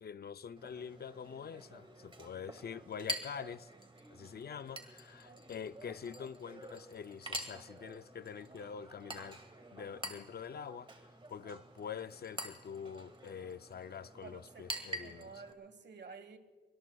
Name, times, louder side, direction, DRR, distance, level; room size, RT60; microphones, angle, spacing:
voice 1, 0.0-3.7 4.1-9.4 9.7-15.4, left 7 dB, 60° left, 0.4 m, -45 dB
Chink clink, 0.6-15.5, right 1 dB, 30° right, 1.7 m, -47 dB
voice 2, 14.2-16.4, right 5 dB, 75° right, 1.3 m, -52 dB
25.0 x 23.5 x 2.3 m
wide cardioid pair, 130°, 18 cm